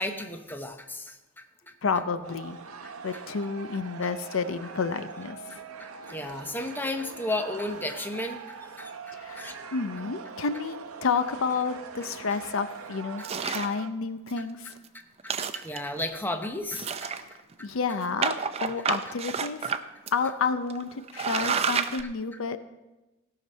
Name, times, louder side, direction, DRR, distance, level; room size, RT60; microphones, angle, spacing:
voice 1, 0.0-1.7 5.8-8.9 9.4-9.5 15.2-17.1, left 1 dB, 10° left, 6 dB, 0.8 m, -34 dB
voice 2, 1.8-2.6 3.0-5.6 9.1-14.7 17.2-17.3 17.6-19.7 20.1-22.6, left 5 dB, 65° left, 11 dB, 0.5 m, -30 dB
sound 1, 2.2-13.9, right 5 dB, 90° right, 0.7 m, -43 dB
sound 2, 13.2-13.8 14.3-14.4 14.7-14.9 15.2-16.0 16.7-17.5 18.2-19.8 20.1-20.2 20.7-20.8 21.1-22.0, right 6 dB, 30° right, 0.5 m, -29 dB
16.0 x 5.9 x 5.4 m, 1.1 s
head